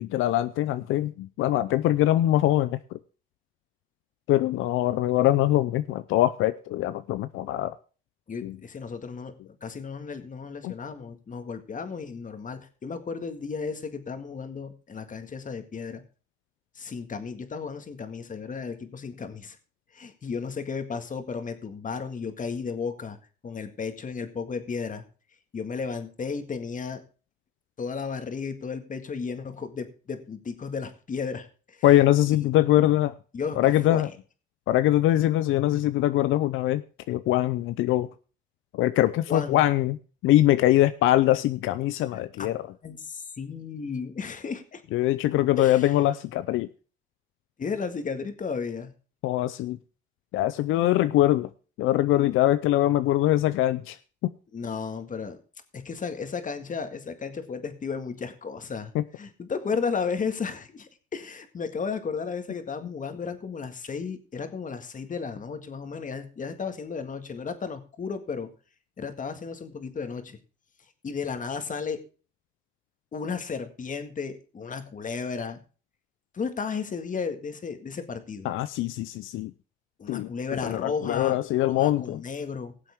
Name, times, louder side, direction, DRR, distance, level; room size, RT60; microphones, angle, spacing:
voice 1, 0.0-3.0 4.3-7.7 8.4-8.6 10.6-10.7 31.8-33.1 33.6-34.1 34.7-36.8 37.1-38.1 38.7-40.0 40.2-42.7 44.9-46.7 49.2-49.8 50.3-51.5 51.8-54.0 54.2-54.3 58.9-59.0 78.4-79.5 80.1-80.3 80.6-82.2, left 14 dB, 90° left, 0.5 m, -23 dB
voice 2, 8.3-16.0 16.8-19.6 19.9-23.2 23.4-25.1 25.5-27.0 27.8-31.8 32.3-32.5 33.3-34.0 39.3-39.7 42.4-42.5 42.8-44.8 45.6-45.9 47.6-48.9 52.1-52.3 54.5-55.4 55.7-68.5 69.0-70.4 71.0-72.0 73.1-75.6 76.3-78.5 80.0-82.7, left 5 dB, 40° left, 1.9 m, -34 dB
18.0 x 7.6 x 3.6 m
cardioid pair, 90°, 20 cm